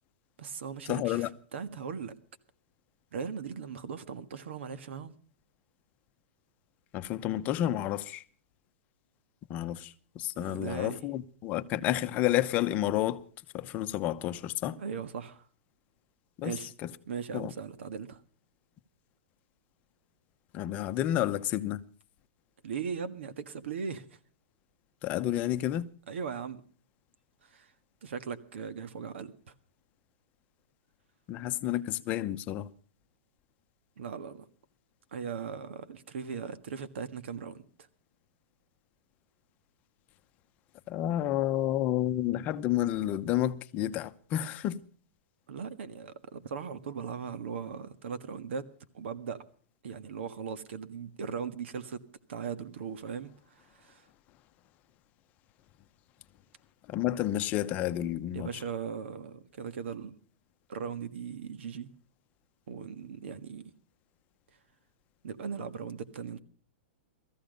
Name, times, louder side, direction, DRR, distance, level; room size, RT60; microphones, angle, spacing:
voice 1, 0.4-2.1 3.1-5.1 10.4-11.0 14.8-15.5 16.4-16.7 17.1-18.2 22.6-24.2 26.1-26.6 27.4-27.7 28.0-29.5 34.0-34.4 35.1-37.6 45.5-48.7 48.9-49.4 49.8-52.0 52.3-54.1 58.0-58.1 58.3-60.1 60.7-61.9 62.7-63.6 65.2-66.4, right 6 dB, 70° right, 1.6 m, -38 dB
voice 2, 0.9-1.3 6.9-8.2 9.5-13.2 13.5-14.8 16.4-16.5 17.3-17.5 20.5-21.8 25.0-25.9 31.3-32.7 40.9-44.8 56.9-58.5, left 13 dB, 25° left, 0.8 m, -30 dB
19.5 x 14.5 x 5.2 m
supercardioid pair, 165°, 7 cm